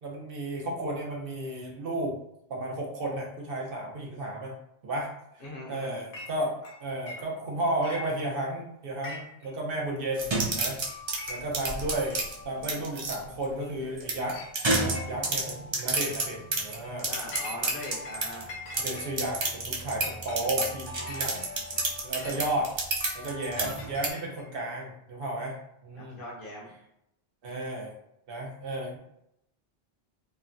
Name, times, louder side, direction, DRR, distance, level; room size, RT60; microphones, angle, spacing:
voice 1, 0.0-2.2 2.5-4.5 4.8-5.1 5.3-5.4 5.7-6.5 6.8-10.3 10.5-10.8 11.3-12.2 12.4-14.4 14.8-17.1 18.8-21.6 22.0-22.7 23.1-25.6 25.8-26.2 27.4-27.9 28.3-29.0, right 1 dB, 65° right, -1 dB, 0.9 m, -33 dB
voice 2, 5.4-6.0 17.1-18.6 25.9-26.7, left 1 dB, 60° left, -3 dB, 1.0 m, -40 dB
Chink clink, 6.1-6.3 6.6-7.5 7.8-8.5 8.9-9.5 9.7-9.8 10.5-10.6 10.9-11.7 12.1-12.2 13.1-13.2 13.6-13.9 14.3-14.5 14.9-15.4 15.8-16.1 16.6-18.2 18.5-22.4 23.1-24.6, left 3 dB, 85° left, 0.9 m, -44 dB
sound 1, 10.2-13.2 14.0-18.5 18.7-24.1, right 2 dB, 45° right, 0.3 m, -31 dB
3.0 x 2.1 x 2.5 m, 0.79 s
omnidirectional pair, 1.0 m